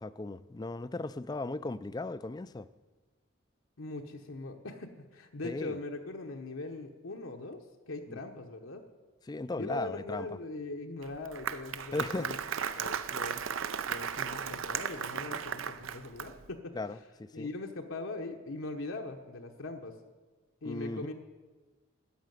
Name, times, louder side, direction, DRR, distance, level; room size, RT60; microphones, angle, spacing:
voice 1, 0.0-2.7 5.4-5.8 8.1-8.2 9.3-10.3 11.9-12.3 16.7-17.5 20.6-21.1, left 2 dB, 20° left, 0.3 m, -37 dB
voice 2, 3.8-8.8 9.6-12.4 12.7-13.4 13.9-16.8 17.3-20.0 20.6-21.1, left 2 dB, 75° left, 1.0 m, -41 dB
Applause, 11.0-16.5, right 7 dB, 75° right, 0.6 m, -36 dB
13.0 x 6.8 x 9.2 m
head